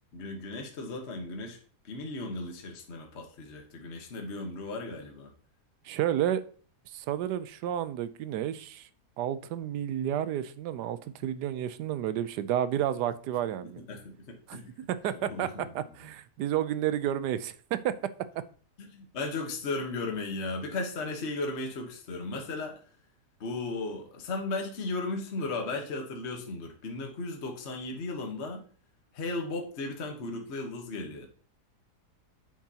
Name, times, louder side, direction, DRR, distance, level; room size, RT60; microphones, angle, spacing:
voice 1, 0.1-1.6 1.8-5.3 13.6-14.7 15.1-15.9 18.8-22.8 23.4-28.6 29.1-31.3, left 3 dB, 45° left, 2 dB, 1.4 m, -36 dB
voice 2, 5.8-6.4 6.9-8.9 9.2-13.8 14.5-14.6 14.9-15.5 15.7-17.9, right 11 dB, 80° right, 14 dB, 1.2 m, -31 dB
9.3 x 7.4 x 2.8 m, 0.43 s
omnidirectional pair, 1.8 m